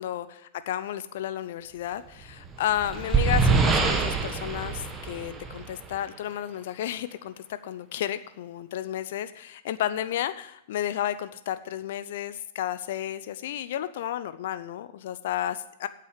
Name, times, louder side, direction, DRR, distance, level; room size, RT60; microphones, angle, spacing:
voice 1, 0.0-15.9, left 11 dB, 65° left, 13 dB, 0.6 m, -32 dB
sound 1, 2.3-6.0, right 4 dB, 20° right, 1.6 m, -25 dB
8.8 x 7.6 x 8.1 m, 0.78 s
hypercardioid pair, 105°, 0 cm